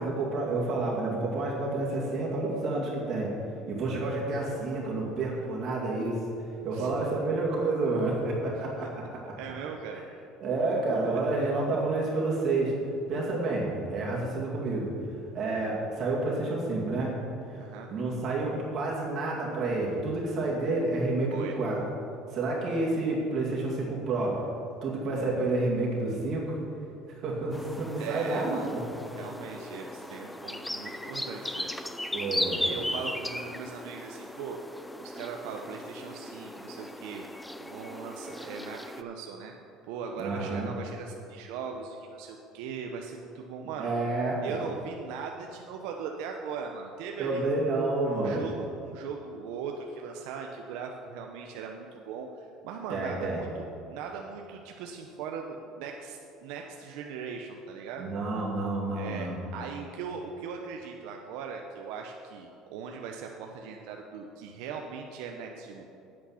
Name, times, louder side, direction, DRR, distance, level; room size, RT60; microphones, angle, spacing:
voice 1, 0.0-3.3 3.7-6.3 6.6-9.2 10.4-12.8 13.1-14.9 15.3-17.2 17.5-17.6 17.9-21.8 22.3-24.4 24.8-26.6 27.2-29.0 32.1-32.6 40.2-40.7 43.8-44.4 47.2-48.5 52.9-53.4 58.0-59.4, right 2 dB, 45° right, -4 dB, 2.2 m, -29 dB
voice 2, 9.4-10.0 11.4-11.5 17.6-17.9 21.3-21.5 28.0-28.7 29.1-31.7 32.6-34.6 35.0-37.2 37.6-39.5 39.9-43.9 44.4-47.6 48.1-58.1 58.9-65.8, right 6 dB, 75° right, 2 dB, 0.7 m, -39 dB
sound 1, 27.5-39.0, left 1 dB, 5° left, 0.4 m, -37 dB
8.6 x 8.6 x 5.7 m, 2.6 s
cardioid pair, 135°, 0 cm